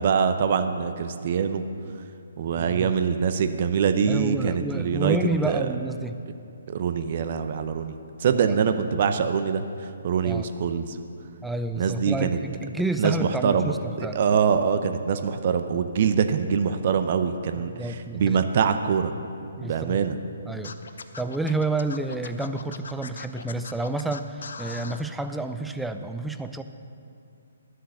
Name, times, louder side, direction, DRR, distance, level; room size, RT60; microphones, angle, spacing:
voice 1, 0.0-1.6 2.4-5.2 5.4-5.7 6.7-9.6 10.0-11.0 11.8-12.4 13.0-19.1 19.6-20.2, right 6 dB, 45° right, 8 dB, 0.7 m, -24 dB
voice 2, 4.1-6.2 8.3-8.6 10.2-10.5 11.4-14.2 17.5-18.4 19.6-20.1 20.5-20.8 21.2-26.6, right 2 dB, 5° right, 8 dB, 0.5 m, -30 dB
Scratching (performance technique), 20.6-25.0, left 5 dB, 65° left, 0.6 m, -40 dB
11.5 x 7.6 x 6.7 m, 2.5 s
figure-of-eight pair, 135°, 0 cm